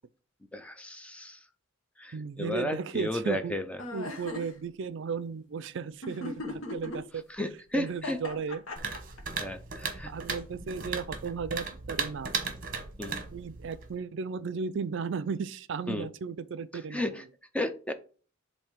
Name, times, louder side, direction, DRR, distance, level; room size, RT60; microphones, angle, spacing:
voice 1, 0.5-1.4 2.0-3.8 7.3-8.2 9.4-10.1 13.0-13.2 15.9-16.1 16.7-17.2 17.5-17.9, left 1 dB, 5° left, 0.5 m, -33 dB
voice 2, 2.1-3.5 3.9-7.2 7.7-8.6 10.1-12.4 13.3-17.1, right 5 dB, 60° right, 0.4 m, -35 dB
sound 1, 3.8-4.5 6.0-7.0 7.9-9.2, left 2 dB, 80° left, 1.2 m, -37 dB
sound 2, 8.8-13.9, right 5 dB, 40° right, 1.0 m, -36 dB
7.4 x 2.7 x 5.0 m
head